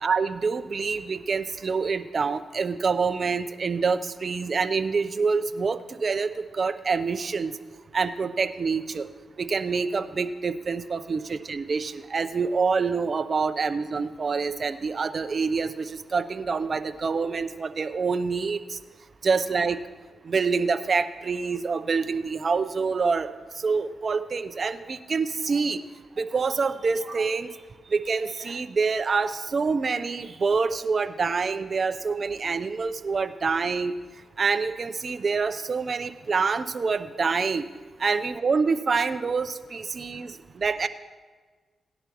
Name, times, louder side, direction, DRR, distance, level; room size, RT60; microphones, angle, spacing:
voice 1, 0.0-7.5 7.9-9.1 9.4-18.8 19.2-19.8 20.2-25.8 26.2-27.5 27.9-33.9 34.4-37.6 38.0-40.9, right 4 dB, 50° right, 11 dB, 0.7 m, -26 dB
18.0 x 10.5 x 3.0 m, 1.4 s
cardioid pair, 60°, 0 cm